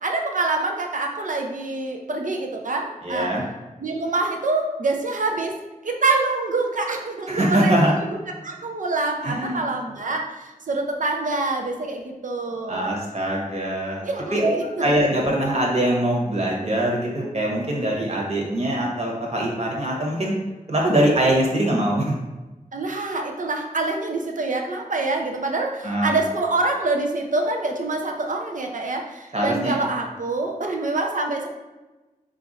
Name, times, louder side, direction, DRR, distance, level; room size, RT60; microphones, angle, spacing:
voice 1, 0.0-3.3 3.8-5.6 5.8-8.2 8.4-12.9 14.0-14.9 22.7-31.5, right 3 dB, 65° right, 2 dB, 0.6 m, -26 dB
voice 2, 3.0-3.4 7.3-7.9 9.2-9.6 12.7-14.0 14.3-14.5 14.8-20.3 20.7-22.2 25.8-26.2 29.3-29.7, right 1 dB, 45° right, -2 dB, 1.1 m, -22 dB
4.0 x 2.6 x 4.1 m, 1.1 s
wide cardioid pair, 85°, 15 cm